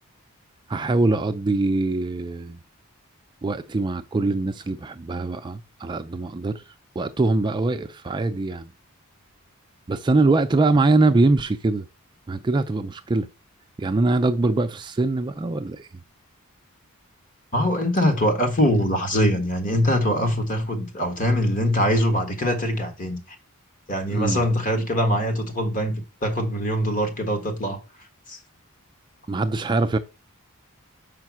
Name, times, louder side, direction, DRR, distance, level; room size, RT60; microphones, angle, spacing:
voice 1, 0.7-2.6 3.4-6.6 7.0-8.7 9.9-11.9 12.3-13.3 13.8-15.9 24.1-24.5 29.3-30.0, right 2 dB, 20° right, 0.4 m, -23 dB
voice 2, 17.5-23.2 23.9-27.8 28.3-28.4, equal, 40° left, 1.5 m, -23 dB
5.5 x 5.1 x 6.0 m
head